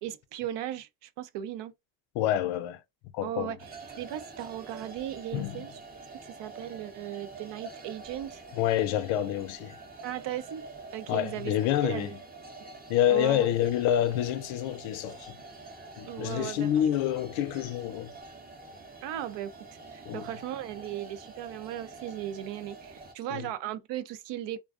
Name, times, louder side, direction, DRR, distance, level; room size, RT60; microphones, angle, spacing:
voice 1, 0.0-1.7 3.2-3.6 4.0-5.8 6.2-8.4 10.0-10.6 10.9-11.5 11.8-12.1 13.1-13.5 16.1-16.7 19.0-19.5 19.9-24.6, right 12 dB, 60° right, 0.5 m, -37 dB
voice 2, 2.1-2.8 3.1-3.5 5.3-5.6 8.5-9.8 11.1-12.1 12.9-15.4 16.0-18.1 20.1-20.3 23.3-23.5, left 11 dB, 70° left, 0.5 m, -27 dB
sound 1, 3.6-23.1, right 3 dB, 20° right, 0.6 m, -46 dB
2.4 x 2.3 x 2.3 m
supercardioid pair, 80°, 49 cm